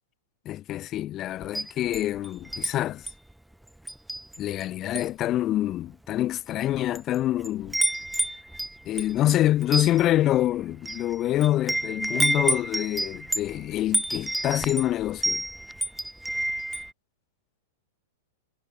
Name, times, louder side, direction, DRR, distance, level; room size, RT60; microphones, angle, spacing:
voice 1, 0.5-3.1 4.4-7.8 8.8-15.4, left 13 dB, 35° left, 3.9 m, -26 dB
Wind chime, 1.4-2.7 3.1-3.3 3.9-4.6 4.9-5.2 5.9-6.0 6.7-7.2 7.4-16.9, right 1 dB, 5° right, 4.7 m, -29 dB
hypercardioid pair, 105°, 0 cm